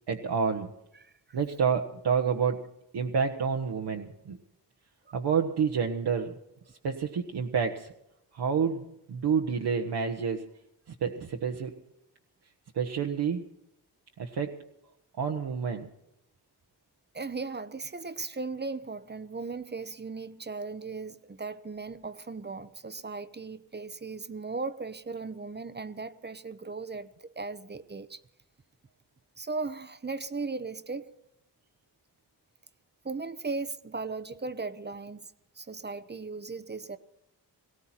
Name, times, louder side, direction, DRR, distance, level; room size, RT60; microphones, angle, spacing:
voice 1, 0.1-0.7 1.3-2.6 2.9-4.4 5.1-6.3 6.8-7.9 8.3-10.5 10.9-11.8 12.7-13.4 14.2-14.6 15.2-15.9, right 6 dB, 65° right, 2 dB, 1.3 m, -29 dB
voice 2, 1.0-1.4 5.1-5.2 17.1-28.2 29.4-31.1 33.0-35.3 35.6-37.0, right 4 dB, 25° right, 13 dB, 0.9 m, -37 dB
19.0 x 17.5 x 4.4 m, 0.83 s
cardioid pair, 100°, 42 cm